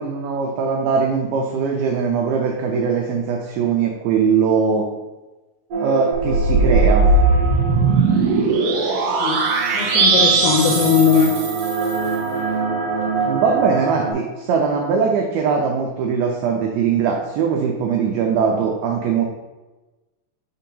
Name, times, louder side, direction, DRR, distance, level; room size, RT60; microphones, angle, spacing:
voice 1, 0.0-4.9 5.8-7.1 13.3-19.2, right 6 dB, 90° right, 0 dB, 2.1 m, -21 dB
sound 1, 5.7-8.2 9.1-14.1, right 5 dB, 50° right, 1.8 m, -25 dB
sound 2, 6.2-12.0, right 3 dB, 75° right, 2.8 m, -18 dB
voice 2, 8.9-9.4 9.7-11.3, left 7 dB, 85° left, -1 dB, 2.3 m, -19 dB
6.7 x 2.8 x 5.2 m, 1.1 s
omnidirectional pair, 5.1 m